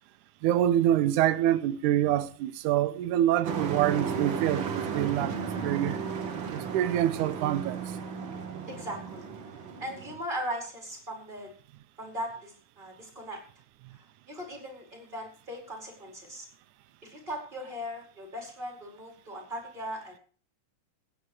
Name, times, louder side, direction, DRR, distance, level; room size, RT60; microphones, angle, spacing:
voice 1, 0.4-5.4 5.6-6.0 6.5-7.8, right 12 dB, 80° right, 2.2 m, -26 dB
Truck, 3.4-10.2, right 6 dB, 45° right, 1.8 m, -34 dB
voice 2, 8.7-9.5 9.8-11.5 12.0-13.4 13.9-14.0 14.3-16.5 17.0-20.2, equal, 15° right, 4.8 m, -39 dB
15.5 x 9.7 x 4.8 m
omnidirectional pair, 3.6 m